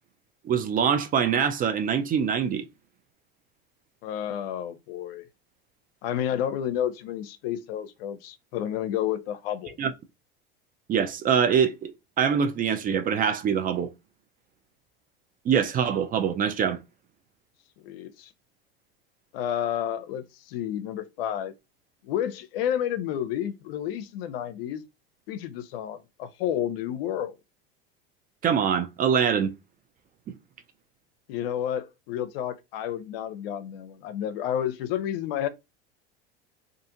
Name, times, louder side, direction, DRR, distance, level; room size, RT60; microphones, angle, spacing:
voice 1, 0.4-2.7 9.8-9.9 10.9-11.9 12.2-13.9 15.5-16.8 28.4-29.5, right 7 dB, 30° right, 0.4 m, -24 dB
voice 2, 4.0-5.2 6.0-9.8 17.8-18.3 19.3-21.5 22.0-24.8 25.3-27.4 31.3-35.5, left 10 dB, 70° left, 0.5 m, -30 dB
2.5 x 2.4 x 2.7 m
hypercardioid pair, 90°, 30 cm